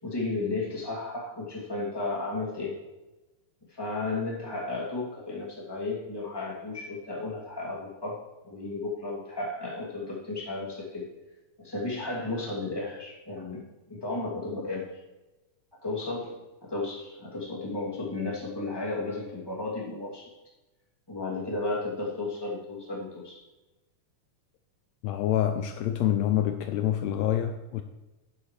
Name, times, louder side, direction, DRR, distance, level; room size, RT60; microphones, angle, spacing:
voice 1, 0.0-2.8 3.7-11.1 11.6-13.6 13.9-15.0 15.8-20.3 21.1-23.4, left 3 dB, 10° left, -5 dB, 2.3 m, -34 dB
voice 2, 25.0-27.8, left 11 dB, 85° left, 7 dB, 1.5 m, -26 dB
11.0 x 9.5 x 3.3 m, 1.1 s
omnidirectional pair, 3.7 m